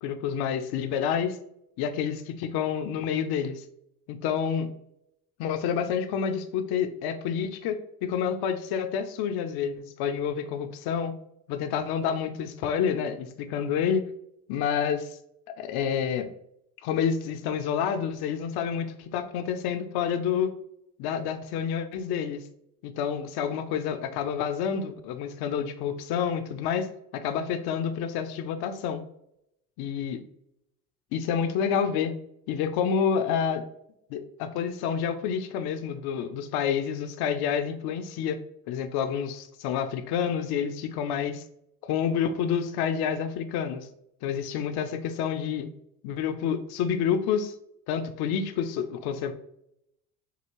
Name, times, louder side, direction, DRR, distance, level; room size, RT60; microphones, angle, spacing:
voice 1, 0.0-1.4 1.8-3.6 4.1-4.7 5.4-11.1 11.5-14.0 14.5-15.1 15.6-16.3 16.8-20.5 21.0-22.4 22.8-26.9 27.1-29.0 29.8-30.2 31.1-32.1 32.5-33.6 34.1-38.4 38.7-41.4 41.8-43.9 44.2-45.7 46.0-47.5 47.9-49.3, left 7 dB, 55° left, 8 dB, 0.8 m, -28 dB
6.9 x 2.4 x 3.1 m, 0.76 s
hypercardioid pair, 75°, 45 cm